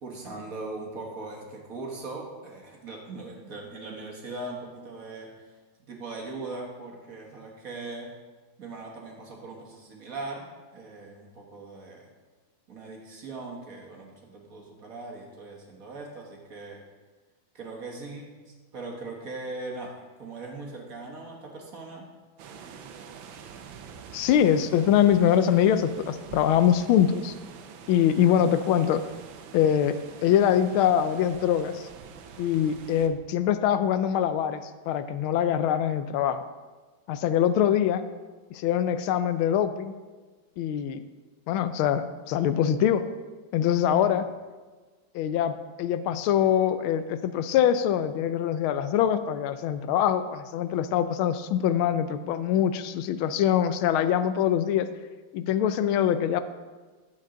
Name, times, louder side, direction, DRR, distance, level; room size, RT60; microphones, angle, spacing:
voice 1, 0.0-5.3 5.9-8.1 8.6-10.5 10.7-12.1 12.7-16.8 17.5-22.1, right 3 dB, 45° right, -1 dB, 1.6 m, -40 dB
sound 1, 22.4-33.1, right 7 dB, 75° right, 1.4 m, -46 dB
voice 2, 24.1-27.3 27.9-29.0 29.5-31.8 32.4-36.4 37.1-38.1 38.5-39.9 40.6-41.1 41.5-43.0 43.5-44.3 45.1-54.9 55.3-56.4, left 9 dB, 85° left, 11 dB, 1.4 m, -23 dB
11.0 x 7.5 x 3.8 m, 1.3 s
omnidirectional pair, 2.3 m